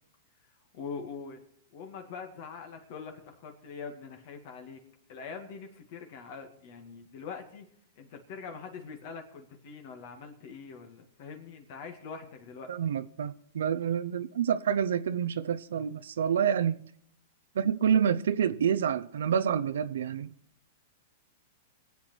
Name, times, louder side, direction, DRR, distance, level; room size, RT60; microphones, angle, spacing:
voice 1, 0.7-1.4 1.7-4.8 5.1-7.7 8.0-12.7, left 5 dB, 55° left, 2.1 m, -43 dB
voice 2, 12.7-16.8 17.5-20.3, right 8 dB, 85° right, 0.7 m, -28 dB
22.5 x 8.4 x 4.5 m
hypercardioid pair, 135°, 0 cm